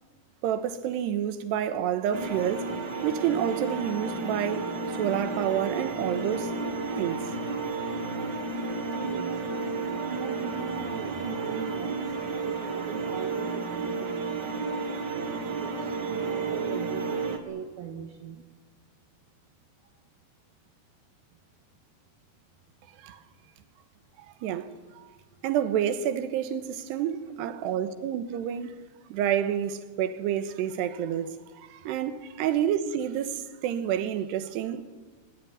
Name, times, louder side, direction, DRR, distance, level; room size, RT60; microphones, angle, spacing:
voice 1, 0.4-2.7 3.0-6.5 7.0-7.3 23.0-23.2 24.2-25.1 25.4-28.8 29.1-34.9, right 9 dB, 90° right, 3.3 m, -29 dB
sound 1, 2.1-17.4, right 4 dB, 45° right, 1.5 m, -32 dB
voice 2, 9.0-9.3 10.1-12.0 12.4-14.1 15.6-18.4, right 9 dB, 70° right, 3.0 m, -40 dB
21.0 x 20.0 x 9.4 m
omnidirectional pair, 4.8 m